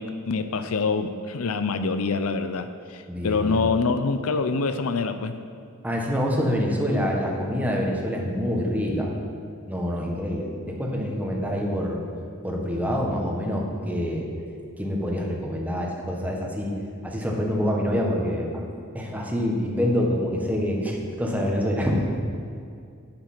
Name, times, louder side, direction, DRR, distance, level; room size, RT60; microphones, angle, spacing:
voice 1, 0.0-5.4, left 4 dB, 80° left, 9 dB, 0.6 m, -25 dB
voice 2, 3.1-3.7 5.8-9.1 9.7-12.0 12.4-14.3 14.8-16.7 17.0-18.6 18.9-22.0, equal, 5° right, -1 dB, 1.5 m, -26 dB
9.5 x 8.6 x 6.1 m, 2.3 s
head